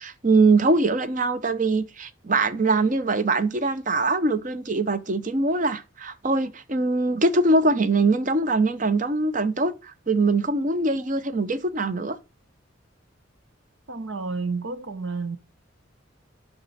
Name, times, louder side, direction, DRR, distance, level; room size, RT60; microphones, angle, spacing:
voice 1, 0.0-12.2, right 3 dB, 40° right, 0.8 m, -22 dB
voice 2, 13.9-15.4, right 4 dB, 75° right, 1.0 m, -30 dB
8.3 x 6.0 x 4.2 m
head